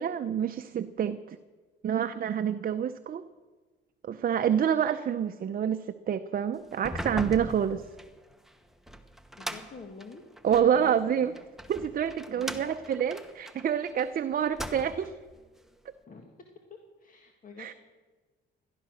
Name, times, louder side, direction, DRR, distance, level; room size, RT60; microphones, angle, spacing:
voice 1, 0.0-1.4 1.8-3.2 4.1-7.8 10.4-11.3 11.7-15.1 17.6-17.7, right 8 dB, 45° right, 9 dB, 0.7 m, -27 dB
sound 1, 6.7-10.8 11.4-14.1 14.4-15.2, equal, ahead, 1.1 m, -39 dB
voice 2, 9.4-10.2 10.6-11.4 12.3-12.7 16.1-16.4 17.0-17.7, left 4 dB, 45° left, 3 dB, 1.8 m, -47 dB
17.5 x 12.5 x 6.4 m, 1.3 s
cardioid pair, 90°, 20 cm